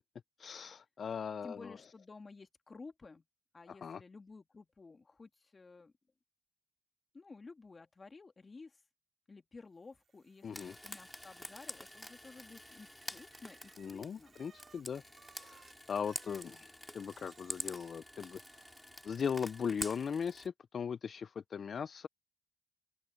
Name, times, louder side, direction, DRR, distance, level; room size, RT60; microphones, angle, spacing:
voice 1, 0.4-1.8 3.7-4.0 10.4-10.7 13.8-15.0 15.4-18.4 19.0-22.1, left 7 dB, 50° left, 0.5 m, -39 dB
voice 2, 1.4-3.2 3.5-5.9 7.1-8.8 9.3-14.3 16.4-16.6, left 3 dB, 30° left, 2.2 m, -53 dB
Bicycle, 9.9-19.3, right 6 dB, 50° right, 5.5 m, -65 dB
Frying (food), 10.5-20.5, left 1 dB, 5° left, 4.7 m, -48 dB
open air
cardioid pair, 90°, 0 cm